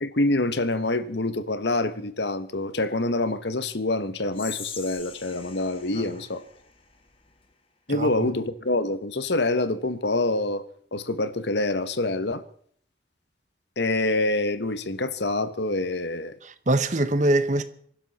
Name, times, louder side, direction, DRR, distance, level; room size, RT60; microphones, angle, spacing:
voice 1, 0.0-6.4 7.9-10.6 10.9-12.4 13.8-16.3, left 2 dB, 70° left, 1.1 m, -26 dB
Whispering, 4.3-7.5, left 6 dB, 30° left, 1.4 m, -42 dB
voice 2, 16.4-17.6, right 1 dB, 40° right, 1.0 m, -23 dB
26.0 x 11.5 x 4.2 m
head